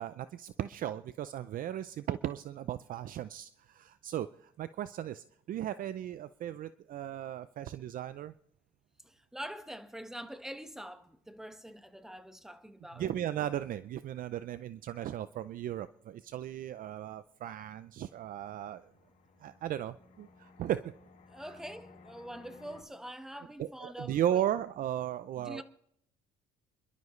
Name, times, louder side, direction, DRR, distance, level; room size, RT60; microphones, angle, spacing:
voice 1, 0.0-8.3 13.0-18.9 19.4-20.9 23.6-25.6, right 11 dB, 55° right, 0.5 m, -36 dB
voice 2, 9.0-13.1 21.3-24.4 25.4-25.6, equal, 5° right, 1.3 m, -45 dB
Fixed-wing aircraft airplane, 17.9-22.8, left 4 dB, 50° left, 4.6 m, -58 dB
27.5 x 12.0 x 3.2 m
cardioid pair, 110°, 17 cm